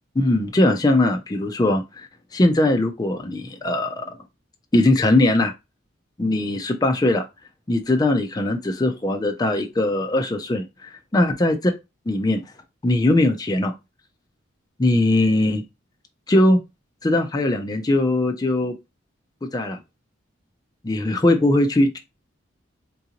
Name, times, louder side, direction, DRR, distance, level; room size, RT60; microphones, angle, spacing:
voice 1, 0.2-2.1 2.3-4.1 4.7-5.5 6.2-7.2 7.7-11.6 12.1-12.4 12.8-13.7 14.8-15.6 16.3-16.6 17.0-18.7 19.5-19.8 20.8-22.0, left 1 dB, 20° left, 0.5 m, -20 dB
3.8 x 2.5 x 2.9 m
head